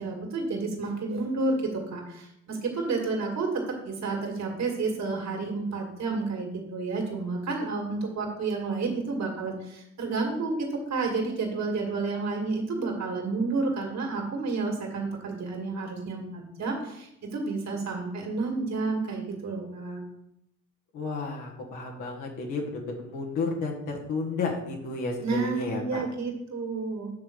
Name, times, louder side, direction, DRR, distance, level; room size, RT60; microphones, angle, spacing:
voice 1, 0.0-20.0 25.2-27.1, right 3 dB, 65° right, 1 dB, 2.3 m, -30 dB
voice 2, 20.9-26.0, left 3 dB, 90° left, -1 dB, 1.6 m, -32 dB
8.5 x 3.9 x 6.4 m, 0.80 s
cardioid pair, 90°, 30 cm